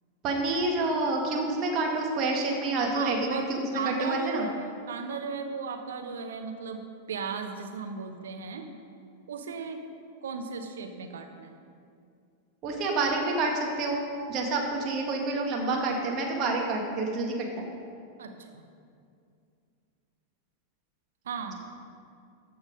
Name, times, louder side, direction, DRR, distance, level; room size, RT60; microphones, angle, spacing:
voice 1, 0.2-4.5 12.6-14.0 14.3-17.7, right 2 dB, 35° right, 0 dB, 1.9 m, -28 dB
voice 2, 2.9-3.5 3.7-8.6 9.3-9.8 10.2-11.5 18.2-18.6 21.2-21.5, right 5 dB, 65° right, 5 dB, 1.0 m, -36 dB
13.5 x 6.2 x 5.1 m, 2.4 s
figure-of-eight pair, 90°, 0 cm